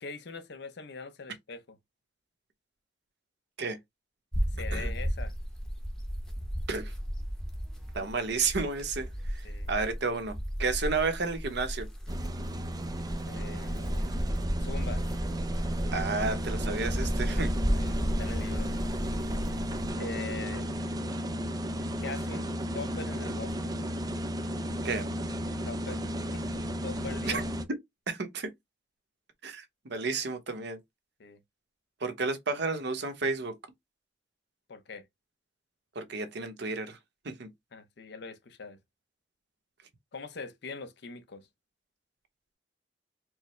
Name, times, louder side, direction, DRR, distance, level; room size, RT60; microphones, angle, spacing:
voice 1, 0.0-1.8 4.5-5.3 9.4-9.7 13.2-14.1 14.6-15.0 17.2-17.9 18.2-18.7 20.0-20.7 22.0-22.5 22.7-23.7 25.7-26.0 26.3-26.4 26.8-27.4 31.2-31.4 34.7-35.1 37.7-38.8 40.1-41.5, left 4 dB, 65° left, 0.6 m, -42 dB
sound 1, 4.3-19.9, equal, 5° left, 0.8 m, -33 dB
voice 2, 7.9-11.9 15.9-17.5 24.8-25.1 27.3-27.4 28.1-28.5 29.4-30.8 32.0-33.6 35.9-37.0 37.2-37.5, right 4 dB, 65° right, 0.9 m, -32 dB
sound 2, 12.1-27.6, equal, 20° right, 0.4 m, -34 dB
4.7 x 2.1 x 3.0 m
head